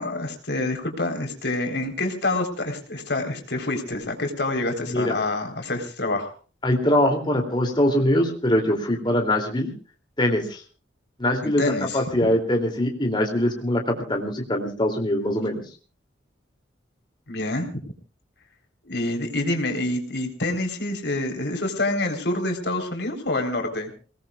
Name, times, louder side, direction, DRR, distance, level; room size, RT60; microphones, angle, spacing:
voice 1, 0.0-6.3 11.4-12.0 17.3-17.9 18.8-23.9, left 2 dB, 60° left, 4 dB, 4.0 m, -27 dB
voice 2, 6.6-9.7 10.2-10.6 11.2-15.6, left 1 dB, 25° left, 2 dB, 2.9 m, -23 dB
28.0 x 19.0 x 2.4 m, 0.37 s
head